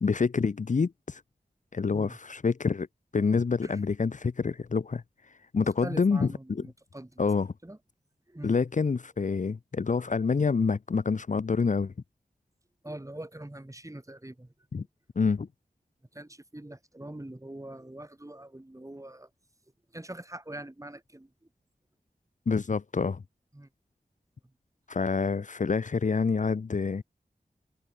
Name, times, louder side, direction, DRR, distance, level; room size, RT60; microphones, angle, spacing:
voice 1, 0.0-1.2 1.7-2.9 3.1-6.6 7.2-7.5 8.4-11.9 14.7-14.9 15.2-15.5 22.5-23.2 24.9-27.0, left 5 dB, 50° left, 0.7 m, -27 dB
voice 2, 5.6-7.3 7.6-7.8 8.3-8.6 12.8-14.5 16.1-19.3 19.9-21.3 23.5-23.7, right 1 dB, 20° right, 6.6 m, -43 dB
wide cardioid pair, 65°, 16 cm